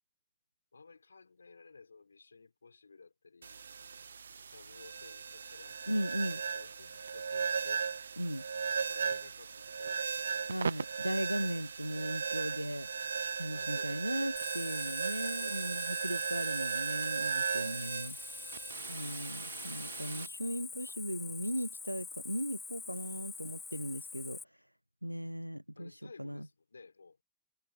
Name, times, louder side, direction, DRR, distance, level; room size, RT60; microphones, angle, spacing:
voice 1, 0.7-3.6 4.5-7.9 8.8-10.9 13.5-15.0 15.2-15.7 18.8-19.2 20.9-21.0 25.8-27.2, left 4 dB, 75° left, 6.2 m, -56 dB
sound 1, 3.4-20.3, right 6 dB, 75° right, 1.3 m, -37 dB
voice 2, 5.9-6.4 8.2-8.5 10.5-12.9 13.4-18.2 18.9-24.4 25.0-26.5, equal, 90° right, 0.5 m, -37 dB
Cricket, 14.4-24.4, left 4 dB, 15° left, 1.7 m, -45 dB
figure-of-eight pair, 90°, 0 cm